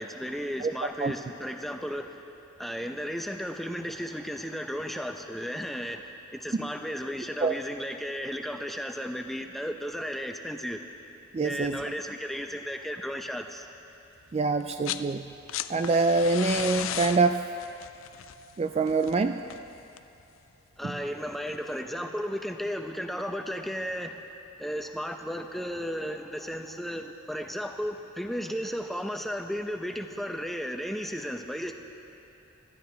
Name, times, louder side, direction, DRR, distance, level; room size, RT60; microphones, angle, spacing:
voice 1, 0.0-2.2 2.6-10.8 11.4-13.7 20.8-24.2 24.6-31.7, equal, ahead, 4 dB, 0.7 m, -34 dB
voice 2, 11.3-11.8 14.3-15.2 15.7-17.4 18.6-19.4 20.8-20.9, right 3 dB, 30° right, 7 dB, 0.3 m, -25 dB
sound 1, 14.6-15.1 15.3-20.2 21.5-21.6, left 11 dB, 80° left, 0.4 m, -36 dB
24.5 x 13.0 x 3.4 m, 2.9 s
head